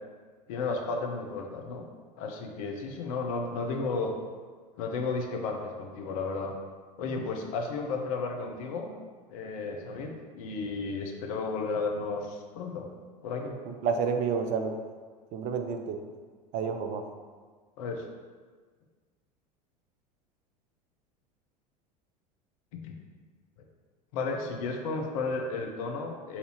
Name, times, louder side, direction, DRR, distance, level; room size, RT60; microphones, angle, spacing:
voice 1, 0.5-1.9 2.2-4.1 4.8-6.5 7.0-8.9 9.3-12.9 13.2-13.6 17.8-18.0 22.8-22.9 24.1-26.4, left 3 dB, 55° left, 2 dB, 0.7 m, -33 dB
voice 2, 13.8-14.7 15.3-16.0 16.5-17.0, right 6 dB, 40° right, 6 dB, 0.5 m, -29 dB
5.6 x 2.7 x 2.9 m, 1.5 s
figure-of-eight pair, 75°, 21 cm